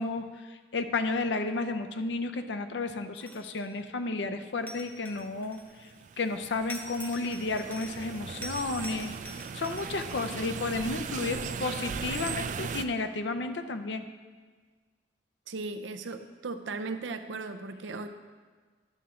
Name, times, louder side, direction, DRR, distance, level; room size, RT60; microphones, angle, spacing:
voice 1, 0.0-5.6 6.2-14.1, left 3 dB, 75° left, 8 dB, 0.6 m, -32 dB
sound 1, 3.1-3.7 4.7-6.0 6.7-8.1 8.4-10.6, left 1 dB, 10° left, 0.6 m, -45 dB
sound 2, 5.6-12.8, right 6 dB, 40° right, 0.3 m, -38 dB
voice 2, 15.5-18.1, right 3 dB, 90° right, 8 dB, 0.6 m, -37 dB
11.0 x 3.7 x 6.9 m, 1.4 s
head